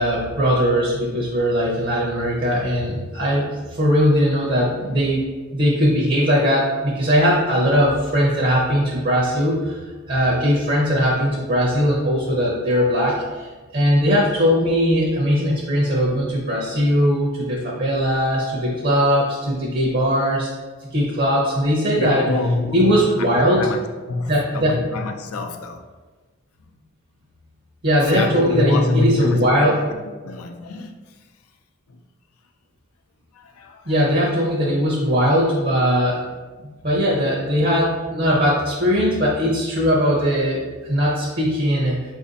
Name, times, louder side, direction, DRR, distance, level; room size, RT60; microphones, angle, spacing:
voice 1, 0.0-5.3 5.5-9.8 10.1-20.5 20.9-22.2 22.7-23.7 24.3-24.8 27.8-29.8 33.9-36.2 36.8-42.0, equal, 45° right, -4 dB, 0.7 m, -19 dB
voice 2, 22.0-23.1 23.6-23.8 24.1-25.8 26.6-26.7 28.1-30.0 30.2-30.9 31.9-32.0 33.3-33.9, left 2 dB, 90° left, 5 dB, 0.4 m, -25 dB
4.0 x 2.6 x 3.9 m, 1.3 s
head